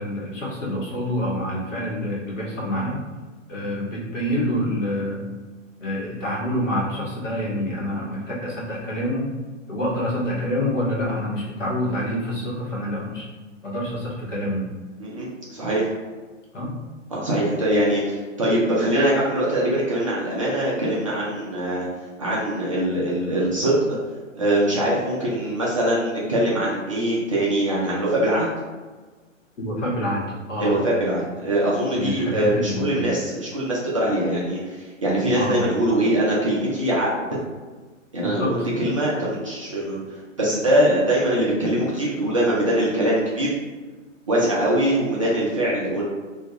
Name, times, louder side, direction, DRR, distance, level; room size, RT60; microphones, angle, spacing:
voice 1, 0.0-3.0 3.5-5.3 5.8-9.3 9.7-13.2 13.6-14.6 16.5-16.7 29.6-30.8 31.9-33.2 35.3-35.8 38.2-38.5, equal, 70° left, -4 dB, 1.0 m, -27 dB
voice 2, 15.0-15.9 17.1-21.9 22.2-24.0 24.4-28.5 30.6-37.2 38.1-40.0 40.4-43.5 44.3-46.0, right 1 dB, 30° right, -6 dB, 0.3 m, -22 dB
2.2 x 2.2 x 2.7 m, 1.3 s
figure-of-eight pair, 120°, 39 cm